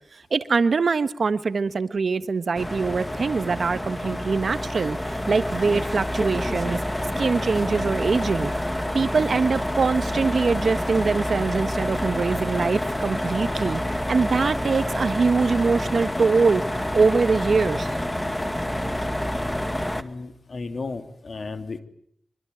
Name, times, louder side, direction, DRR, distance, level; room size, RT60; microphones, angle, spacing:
voice 1, 0.1-6.8 7.2-8.5 8.9-13.8 14.1-16.6 16.9-18.0, right 4 dB, 70° right, 13 dB, 1.3 m, -23 dB
sound 1, 2.5-20.0, left 1 dB, 15° left, 1.9 m, -28 dB
voice 2, 19.9-21.8, left 3 dB, 65° left, 9 dB, 2.8 m, -34 dB
24.5 x 24.5 x 9.4 m, 0.67 s
wide cardioid pair, 80°, 0 cm